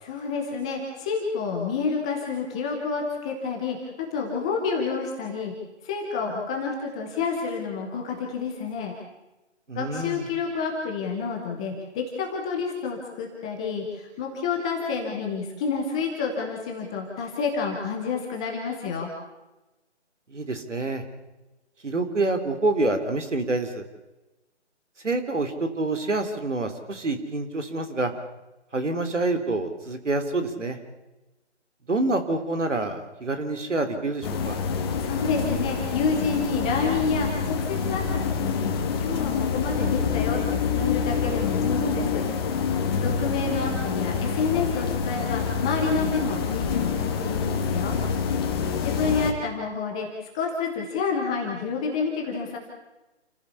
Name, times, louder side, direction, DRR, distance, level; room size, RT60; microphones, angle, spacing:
voice 1, 0.0-5.5 5.8-8.9 9.7-19.1 35.0-38.7 39.0-42.2 43.0-48.0 48.8-52.6, left 5 dB, 5° left, 0 dB, 0.7 m, -29 dB
voice 2, 9.7-10.2 20.3-21.0 21.8-23.8 25.0-28.1 28.7-30.8 31.9-34.6 43.0-43.6, right 2 dB, 80° right, 8 dB, 3.6 m, -27 dB
sound 1, 34.2-49.3, left 6 dB, 20° left, 1.7 m, -27 dB
28.5 x 15.0 x 7.0 m, 1.0 s
figure-of-eight pair, 155°, 36 cm